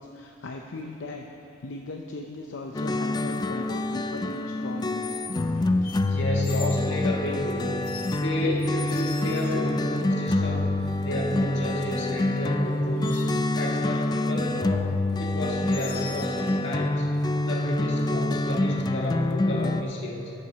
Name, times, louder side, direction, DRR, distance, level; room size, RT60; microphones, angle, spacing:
voice 1, 0.0-5.1 5.5-5.9 9.2-9.3, left 2 dB, 85° left, 2 dB, 0.6 m, -38 dB
sound 1, 0.7-1.0 2.8-3.1 5.0-5.5 5.8-6.9 7.8-9.9 12.1-12.2 12.6-13.5 15.7-16.4, left 6 dB, 50° left, 0.8 m, -42 dB
sound 2, 2.7-19.8, left 2 dB, 20° left, 0.3 m, -27 dB
voice 2, 6.1-7.8 8.1-10.7 11.0-13.3 13.6-14.9 15.2-17.1 17.4-20.4, left 1 dB, 70° left, -2 dB, 1.8 m, -30 dB
9.2 x 7.4 x 7.2 m, 2.9 s
head